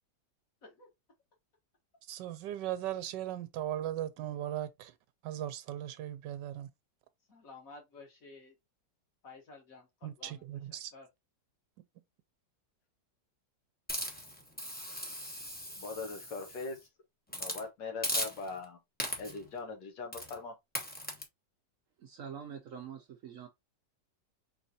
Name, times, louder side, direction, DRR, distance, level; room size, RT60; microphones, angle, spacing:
voice 1, 2.1-4.9 5.2-6.7 10.0-10.9, right 12 dB, 80° right, 1.2 m, -38 dB
voice 2, 7.3-8.5 9.2-10.4 10.7-11.1, left 3 dB, 50° left, 1.7 m, -53 dB
Hiss, 13.9-16.8 17.3-17.6 18.0-18.6 19.0-19.5 20.1-20.4 20.7-21.2, equal, 10° left, 0.6 m, -38 dB
voice 3, 15.8-16.8 17.3-18.8 19.2-20.5, left 4 dB, 85° left, 1.9 m, -41 dB
voice 4, 22.0-23.5, right 8 dB, 65° right, 0.9 m, -45 dB
4.6 x 3.2 x 2.7 m
omnidirectional pair, 1.9 m